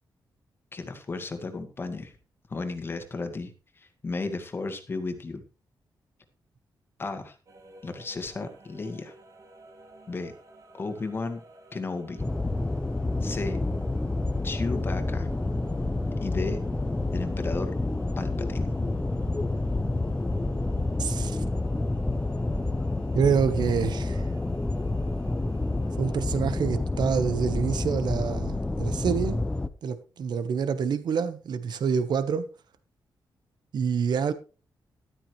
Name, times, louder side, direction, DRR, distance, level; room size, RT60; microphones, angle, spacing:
voice 1, 0.7-2.1 2.5-3.5 3.8-5.4 7.0-7.4 7.8-9.1 10.1-10.3 10.7-11.4 11.7-12.2 13.2-13.6 14.4-15.3 16.2-16.6 17.1-17.7 18.2-18.7, left 3 dB, 30° left, 1.8 m, -34 dB
sound 1, 7.5-26.3, right 3 dB, 45° right, 2.5 m, -52 dB
sound 2, 12.2-29.7, left 2 dB, 10° left, 0.7 m, -28 dB
voice 2, 21.0-21.4 23.1-24.3 26.0-29.4 29.8-32.5 33.7-34.3, right 6 dB, 65° right, 1.2 m, -27 dB
13.5 x 12.5 x 3.2 m
wide cardioid pair, 175°, 8 cm